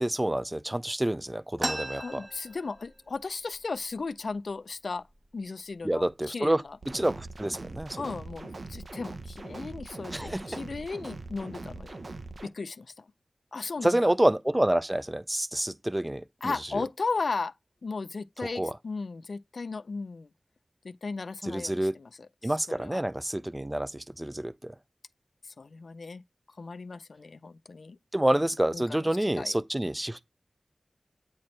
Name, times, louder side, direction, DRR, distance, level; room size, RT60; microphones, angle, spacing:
voice 1, 0.0-2.3 5.8-8.0 10.1-10.6 13.8-16.8 18.4-18.8 21.4-22.0 22.4-24.7 28.1-30.2, right 1 dB, 15° right, 0.4 m, -28 dB
sound 1, 1.6-3.2 3.5-3.6 3.9-4.5 5.1-5.3 6.0-6.2 6.6-7.1, right 1 dB, 35° right, 0.8 m, -36 dB
voice 2, 2.0-5.0 5.3-6.5 8.0-12.0 12.4-13.1 13.5-14.1 16.4-17.5 17.8-20.3 20.8-22.1 22.4-23.0 25.6-26.2 26.6-28.0 28.7-29.5, left 4 dB, 80° left, 0.3 m, -36 dB
sound 2, 6.8-12.5, right 2 dB, 70° right, 0.8 m, -41 dB
8.6 x 4.2 x 3.1 m
wide cardioid pair, 65°, 0 cm